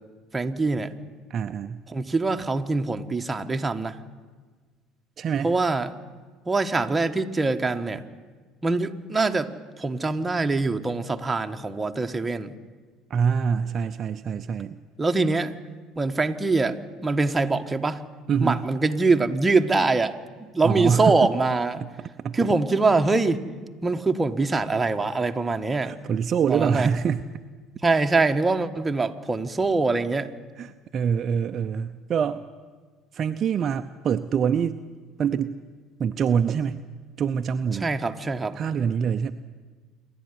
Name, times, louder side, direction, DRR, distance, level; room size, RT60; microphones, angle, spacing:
voice 1, 0.3-0.9 1.9-3.9 5.4-6.0 6.5-8.0 8.6-9.5 9.8-12.5 15.0-15.5 15.9-18.0 18.4-21.8 22.3-23.4 23.8-25.9 26.5-26.9 27.8-30.3 37.8-38.6, right 3 dB, 20° right, 6 dB, 1.4 m, -23 dB
voice 2, 1.3-1.8 5.2-5.5 13.1-14.8 18.3-18.6 20.6-21.3 21.8-22.5 25.8-27.2 30.6-32.4 33.1-34.8 35.2-35.6 36.0-36.8 37.2-37.9 38.6-39.3, right 7 dB, 45° right, 9 dB, 0.7 m, -25 dB
27.5 x 12.0 x 9.9 m, 1.4 s
hypercardioid pair, 75°, 0 cm